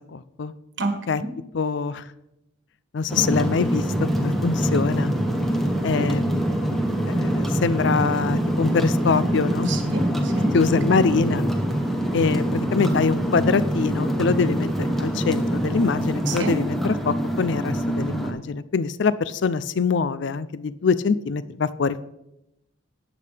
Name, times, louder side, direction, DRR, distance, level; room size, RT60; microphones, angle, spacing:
voice 1, 0.1-0.5 1.1-1.2 1.5-2.0 2.9-3.9 4.2-5.1 5.8-6.4 7.1-9.7 10.5-11.4 12.1-22.0, left 5 dB, 60° left, 16 dB, 0.4 m, -24 dB
sound 1, 3.1-18.3, right 1 dB, ahead, 0.9 m, -24 dB
voice 2, 9.7-10.5 10.9-11.0 16.3-16.5, right 2 dB, 60° right, 6 dB, 1.4 m, -27 dB
12.0 x 8.5 x 3.4 m, 0.87 s
head